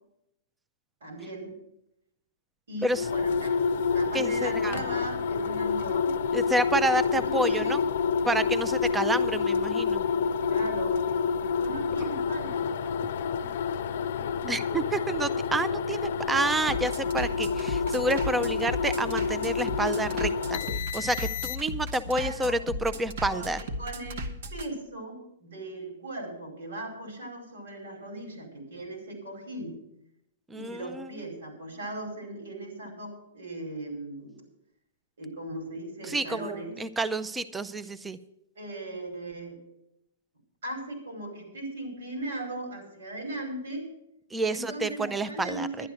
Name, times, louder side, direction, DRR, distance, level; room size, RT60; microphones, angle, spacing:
voice 1, 1.0-1.6 2.7-6.1 7.0-7.8 10.4-11.0 11.6-12.7 22.1-22.6 23.2-24.2 24.5-29.7 30.5-34.4 35.2-36.8 38.5-39.6 40.6-43.9 44.4-45.9, right 1 dB, 85° right, 2 dB, 4.7 m, -38 dB
sound 1, 2.9-21.9, left 5 dB, 65° left, 0.5 m, -28 dB
voice 2, 4.1-4.8 6.3-7.8 8.3-10.0 14.5-20.6 20.9-23.6 30.5-31.1 36.1-38.2 44.3-45.9, right 2 dB, 10° right, 14 dB, 0.5 m, -29 dB
Bass drum, 8.7-24.7, equal, 65° right, 1.2 m, -37 dB
11.5 x 10.0 x 6.3 m, 0.81 s
hypercardioid pair, 145°, 0 cm